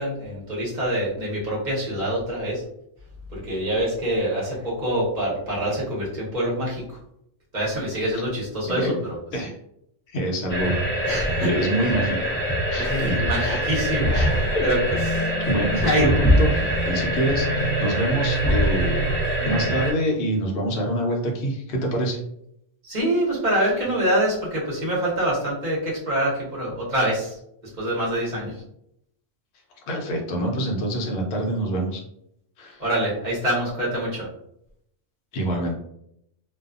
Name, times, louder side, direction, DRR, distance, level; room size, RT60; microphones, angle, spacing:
voice 1, 0.0-2.6 3.3-7.0 7.5-9.2 11.0-11.5 11.8-12.0 12.8-14.8 15.1-15.3 15.7-16.1 22.8-27.4 27.8-28.6 32.8-34.3, right 1 dB, 40° right, -6 dB, 1.0 m, -25 dB
voice 2, 10.1-10.8 11.4-12.4 12.7-13.7 14.1-14.7 15.4-22.2 29.9-32.0 32.6-32.8 35.3-35.7, right 1 dB, 60° left, 0 dB, 0.8 m, -26 dB
sound 1, 10.5-19.9, right 1 dB, 15° left, 0.4 m, -23 dB
2.6 x 2.3 x 2.4 m, 0.75 s
omnidirectional pair, 1.3 m